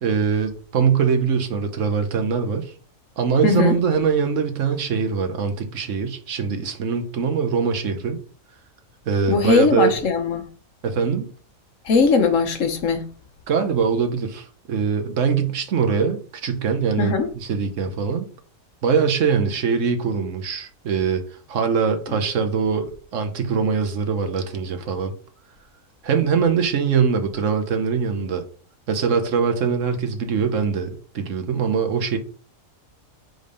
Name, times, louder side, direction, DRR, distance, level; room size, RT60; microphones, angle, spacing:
voice 1, 0.0-2.7 3.2-8.2 9.1-9.9 10.8-11.3 13.5-18.3 18.8-21.2 21.5-25.1 26.0-28.4 28.9-32.2, right 6 dB, 65° right, 1.2 m, -22 dB
voice 2, 3.4-3.7 9.3-10.4 11.8-13.1 17.0-17.3, left 5 dB, 70° left, 1.2 m, -19 dB
5.2 x 3.9 x 5.3 m
omnidirectional pair, 1.4 m